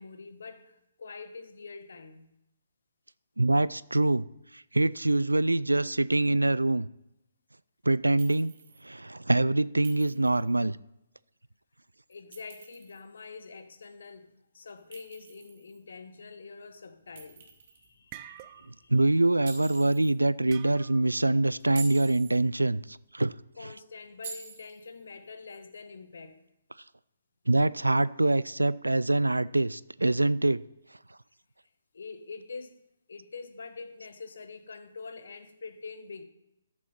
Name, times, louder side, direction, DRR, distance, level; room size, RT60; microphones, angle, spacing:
voice 1, 0.0-2.3 12.1-17.4 17.7-18.9 23.6-26.4 31.9-32.8 33.1-36.2, left 4 dB, 60° left, 1.1 m, -45 dB
voice 2, 3.4-4.2 4.5-6.9 7.9-8.5 8.8-10.8 18.9-23.3 27.5-30.6, right 2 dB, 85° right, 0.3 m, -25 dB
Chink clink, 8.2-8.8 9.8-10.5 12.1-13.0 14.9-15.8 17.2-17.9 19.5-20.1 21.6-22.4 24.2-24.9, right 5 dB, 50° right, 2.8 m, -46 dB
sound 1, 17.2-17.5 17.9-18.9 19.2-19.5 20.5-21.2, right 13 dB, 30° right, 0.5 m, -47 dB
13.0 x 7.1 x 4.3 m
figure-of-eight pair, 135°, 0 cm